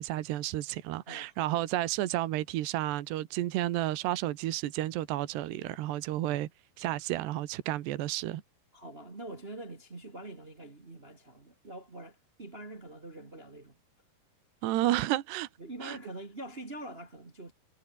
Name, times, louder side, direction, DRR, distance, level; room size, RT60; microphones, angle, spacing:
voice 1, 0.0-6.5 6.8-8.4 14.6-15.5 15.8-16.0, right 15 dB, 80° right, 3.4 m, -31 dB
voice 2, 1.1-1.6 8.7-13.8 15.6-17.5, right 1 dB, 40° right, 0.8 m, -44 dB
omnidirectional pair, 4.9 m